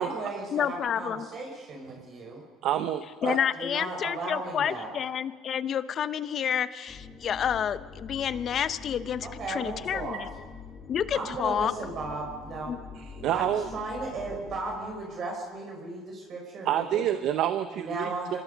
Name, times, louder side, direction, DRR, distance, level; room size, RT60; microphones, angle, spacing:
voice 1, 0.0-2.4 3.2-4.9 9.2-10.2 11.1-12.7 13.3-17.0 17.7-18.4, right 3 dB, 50° right, 0 dB, 5.1 m, -35 dB
voice 2, 0.5-1.3 3.2-10.3 10.9-11.7 12.7-12.8, left 8 dB, 45° left, 13 dB, 0.9 m, -29 dB
voice 3, 2.6-3.4 13.2-13.7 16.6-18.4, right 11 dB, 65° right, 10 dB, 1.0 m, -28 dB
sound 1, 6.9-15.2, left 5 dB, 20° left, 6.8 m, -45 dB
26.0 x 20.5 x 5.3 m, 1.5 s
supercardioid pair, 95°, 0 cm